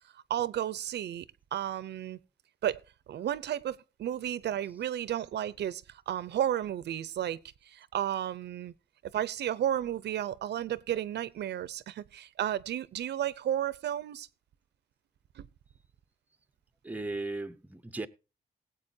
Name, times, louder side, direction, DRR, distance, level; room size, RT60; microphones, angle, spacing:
voice 1, 0.1-1.3 1.5-2.2 2.6-2.8 3.1-7.4 7.6-8.7 9.1-14.3 15.4-15.5, right 11 dB, 75° right, 0.6 m, -33 dB
voice 2, 16.8-18.1, right 2 dB, 10° right, 0.7 m, -36 dB
20.5 x 8.3 x 2.7 m
wide cardioid pair, 140°, 18 cm